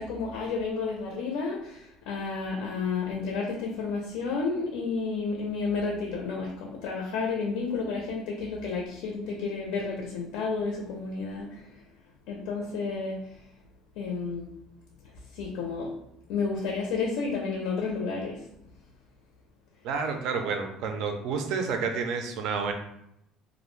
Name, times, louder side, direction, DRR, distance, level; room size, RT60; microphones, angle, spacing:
voice 1, 0.0-11.8 12.3-13.4 14.0-14.5 15.3-15.9 16.3-18.5, left 4 dB, 75° left, 0 dB, 0.5 m, -31 dB
voice 2, 19.8-22.7, right 5 dB, 55° right, 5 dB, 0.4 m, -30 dB
2.4 x 2.0 x 3.1 m, 0.79 s
cardioid pair, 180°, 0 cm